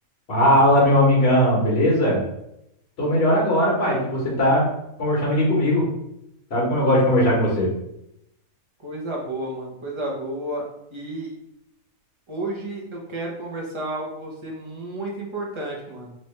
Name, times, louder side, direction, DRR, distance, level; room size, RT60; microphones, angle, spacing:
voice 1, 0.3-2.2 3.0-4.6 5.0-5.8 6.5-7.7, left 1 dB, 45° left, -4 dB, 1.6 m, -19 dB
voice 2, 8.8-11.3 12.3-16.1, right 1 dB, 25° right, -2 dB, 0.6 m, -31 dB
3.3 x 3.1 x 3.2 m, 0.81 s
omnidirectional pair, 1.5 m